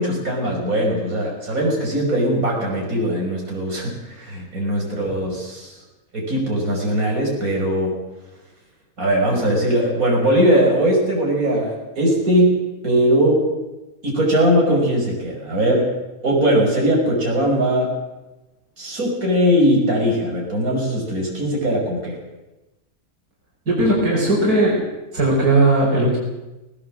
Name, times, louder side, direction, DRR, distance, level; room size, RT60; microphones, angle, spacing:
voice 1, 0.0-5.7 6.1-7.9 9.0-13.4 14.0-15.9 16.2-17.9 18.8-22.2, equal, 65° right, -2 dB, 6.4 m, -20 dB
voice 2, 23.7-24.9 25.1-26.2, right 2 dB, 90° right, -3 dB, 5.5 m, -17 dB
19.0 x 18.5 x 7.8 m, 1.0 s
omnidirectional pair, 1.6 m